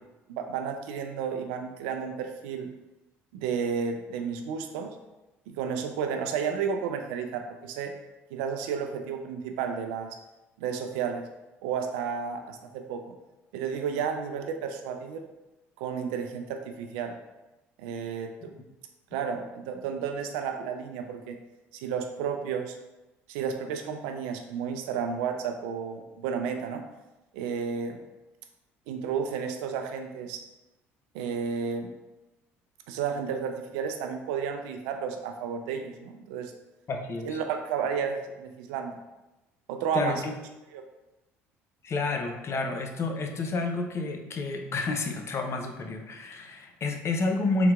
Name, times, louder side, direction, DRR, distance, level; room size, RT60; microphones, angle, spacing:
voice 1, 0.3-2.7 3.3-4.9 5.5-7.9 8.3-10.1 10.6-11.2 11.6-13.1 13.5-15.2 15.8-17.2 17.8-18.5 19.1-21.4 21.7-22.8 23.3-26.8 27.3-28.0 28.9-30.4 31.1-31.9 32.9-36.5 37.3-39.0 39.7-40.2 40.7-40.8, right 6 dB, 75° right, 5 dB, 0.4 m, -32 dB
voice 2, 36.9-37.4 39.9-40.3 41.8-47.7, left 3 dB, 40° left, 3 dB, 0.5 m, -30 dB
3.7 x 2.7 x 2.3 m, 1.0 s
hypercardioid pair, 65°, 7 cm